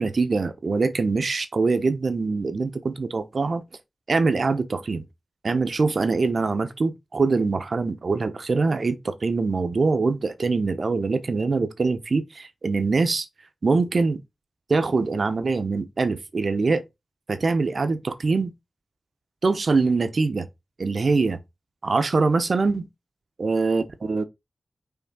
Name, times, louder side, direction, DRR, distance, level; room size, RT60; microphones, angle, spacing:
voice 1, 0.0-3.6 4.1-5.0 5.4-13.3 13.6-14.2 14.7-16.8 17.3-18.5 19.4-20.5 20.8-21.4 21.8-22.9 23.4-24.2, right 4 dB, 65° right, 1.0 m, -23 dB
5.9 x 3.7 x 5.4 m
cardioid pair, 55°, 0 cm